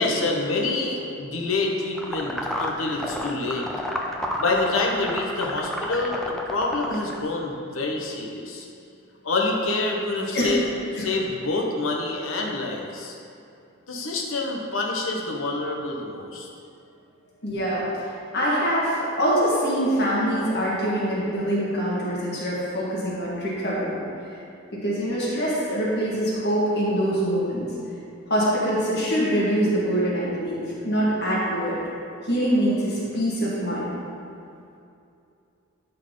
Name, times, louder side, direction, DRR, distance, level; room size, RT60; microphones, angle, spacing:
voice 1, 0.0-3.7 4.4-8.7 9.2-10.6 10.9-13.2 13.9-16.5, left 2 dB, 80° left, -1 dB, 1.2 m, -27 dB
sound 1, 2.0-7.2, left 1 dB, 5° left, 0.6 m, -30 dB
voice 2, 17.4-17.8 18.3-24.0 24.7-27.7 28.3-31.8 32.2-33.9, equal, 55° left, -7 dB, 1.8 m, -24 dB
13.0 x 4.6 x 3.9 m, 2.6 s
head